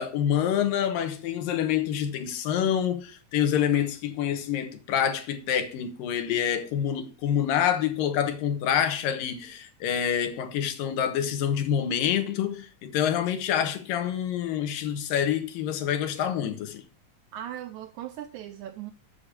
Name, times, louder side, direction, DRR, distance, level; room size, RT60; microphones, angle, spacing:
voice 1, 0.0-16.8, left 9 dB, 80° left, 2.8 m, -27 dB
voice 2, 17.3-18.9, right 11 dB, 80° right, 1.8 m, -38 dB
8.5 x 6.5 x 7.3 m
omnidirectional pair, 3.9 m